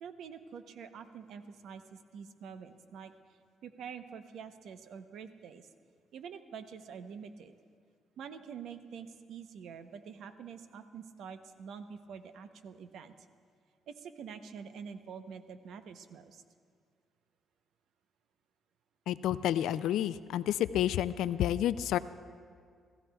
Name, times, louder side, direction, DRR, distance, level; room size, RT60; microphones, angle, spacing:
voice 1, 0.0-3.1 3.6-5.7 6.1-7.5 8.2-13.1 13.9-16.4, right 6 dB, 75° right, 9 dB, 0.8 m, -46 dB
voice 2, 19.1-22.0, left 11 dB, 85° left, 15 dB, 0.3 m, -30 dB
28.5 x 14.0 x 2.3 m, 2.1 s
cardioid pair, 90°, 0 cm